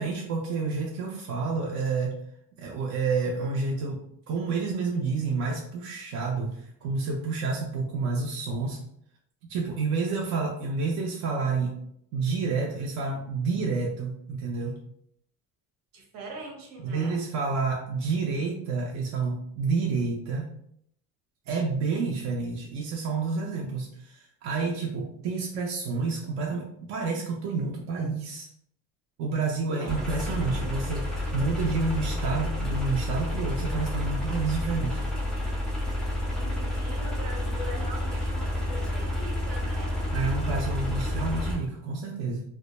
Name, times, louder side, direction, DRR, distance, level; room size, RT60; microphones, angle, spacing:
voice 1, 0.0-2.1 2.6-8.8 9.5-11.7 12.1-14.8 16.8-20.5 21.5-28.5 29.2-35.0 40.1-42.4, right 4 dB, 55° right, -1 dB, 0.5 m, -29 dB
voice 2, 15.9-17.2 29.6-30.4 36.3-40.0, right 1 dB, 80° right, 1 dB, 0.9 m, -42 dB
sound 1, 29.9-41.6, left 1 dB, ahead, 0.3 m, -30 dB
2.1 x 2.1 x 2.9 m, 0.70 s
cardioid pair, 145°, 34 cm